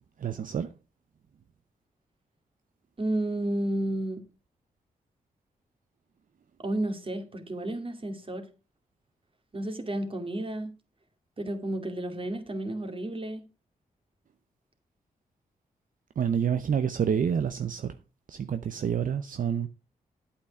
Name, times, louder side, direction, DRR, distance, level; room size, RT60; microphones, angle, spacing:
voice 1, 0.2-0.7 16.2-17.9 18.3-19.7, right 7 dB, 65° right, 0.7 m, -28 dB
voice 2, 3.0-4.2 6.6-8.5 9.5-10.7 11.4-13.4, right 1 dB, 35° right, 2.5 m, -32 dB
8.7 x 8.5 x 4.7 m
cardioid pair, 55°, 15 cm